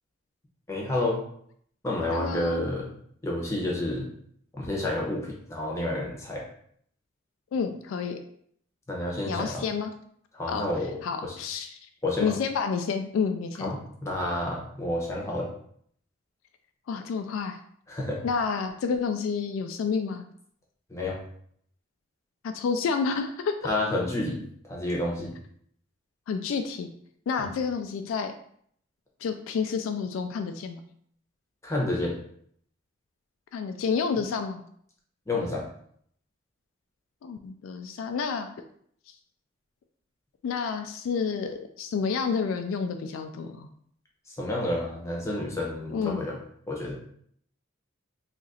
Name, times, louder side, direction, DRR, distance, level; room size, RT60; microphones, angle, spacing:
voice 1, 0.7-1.2 1.8-2.9 3.2-4.1 4.5-6.4 8.9-9.6 10.3-11.4 12.0-12.3 13.6-15.5 17.9-18.2 20.9-21.2 23.6-25.3 31.6-32.1 35.3-35.6 44.3-46.4 46.7-47.0, left 1 dB, 15° left, -2 dB, 0.7 m, -30 dB
voice 2, 2.1-2.6 7.5-8.2 9.3-9.9 10.5-10.7 11.0-11.8 12.2-13.7 16.9-17.6 18.2-20.2 22.4-23.7 26.3-26.9 27.3-28.3 29.2-30.8 33.5-34.6 37.2-38.5 40.4-43.7 45.9-46.2, left 5 dB, 85° left, 6 dB, 0.3 m, -29 dB
2.8 x 2.4 x 4.1 m, 0.64 s
head